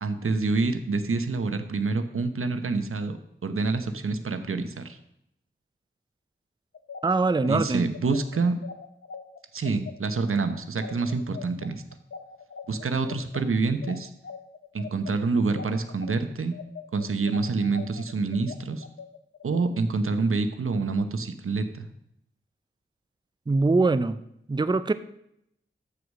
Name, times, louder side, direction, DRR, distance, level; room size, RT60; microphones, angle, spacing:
voice 1, 0.0-5.0 7.5-8.5 9.5-11.8 12.7-14.1 14.7-16.5 16.9-18.8 19.4-21.9, right 3 dB, 85° right, 9 dB, 0.9 m, -27 dB
sound 1, 6.7-16.1 16.5-19.6, left 6 dB, 80° left, 0.7 m, -42 dB
voice 2, 7.0-7.9 23.5-24.2 24.5-24.9, right 3 dB, 20° right, 13 dB, 0.5 m, -23 dB
13.5 x 4.8 x 6.4 m, 0.79 s
wide cardioid pair, 70°, 21 cm